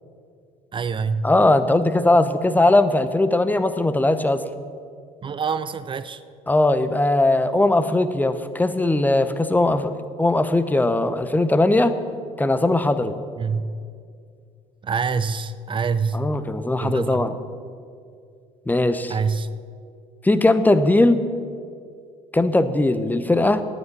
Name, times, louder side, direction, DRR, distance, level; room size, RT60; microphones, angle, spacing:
voice 1, 0.7-1.3 5.2-6.2 13.4-13.7 14.8-16.2 16.8-17.3 19.1-19.5, right 5 dB, 30° right, 14 dB, 0.6 m, -25 dB
voice 2, 1.2-4.4 6.5-11.9 12.4-13.2 16.1-17.3 18.7-19.2 20.2-21.2 22.3-23.6, left 2 dB, 10° left, 11 dB, 0.8 m, -19 dB
9.3 x 8.2 x 9.0 m, 2.2 s
hypercardioid pair, 65°, 17 cm